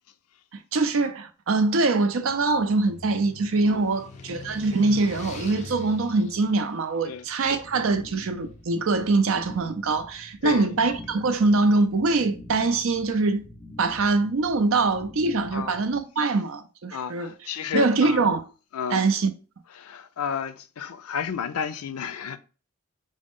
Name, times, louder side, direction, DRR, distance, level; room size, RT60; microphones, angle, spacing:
voice 1, 0.5-13.5 13.8-17.3 17.7-18.4 18.9-19.3, right 3 dB, 70° right, 0.5 m, -23 dB
sound 1, 1.8-8.1, left 3 dB, 30° left, 0.5 m, -42 dB
sound 2, 7.4-16.0, left 1 dB, 10° left, 1.2 m, -46 dB
voice 2, 16.9-18.2 18.7-19.1 19.8-22.4, left 7 dB, 90° left, 0.4 m, -31 dB
4.9 x 2.1 x 3.6 m
head